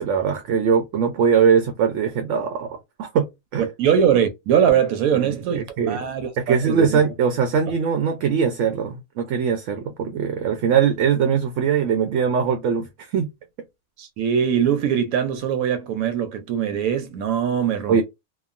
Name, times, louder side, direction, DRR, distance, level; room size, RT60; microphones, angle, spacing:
voice 1, 0.0-3.3 3.5-3.7 5.1-6.0 6.4-13.3 17.9-18.0, right 7 dB, 70° right, 0.8 m, -21 dB
voice 2, 3.6-7.0 14.0-18.0, right 8 dB, 85° right, 1.1 m, -22 dB
2.9 x 2.3 x 2.4 m
omnidirectional pair, 1.5 m